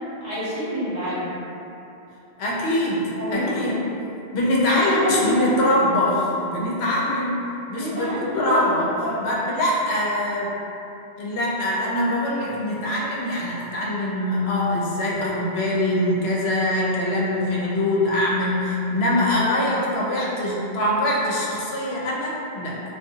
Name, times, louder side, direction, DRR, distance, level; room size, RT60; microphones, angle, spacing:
voice 1, 0.2-1.4 3.2-3.6 4.6-5.6 7.7-9.2, equal, 35° right, -15 dB, 1.4 m, -28 dB
voice 2, 2.4-3.7 4.3-7.4 7.7-8.9 9.2-10.5 11.2-22.8, left 1 dB, 75° left, -5 dB, 0.8 m, -23 dB
2.5 x 2.2 x 2.6 m, 2.9 s
omnidirectional pair, 1.1 m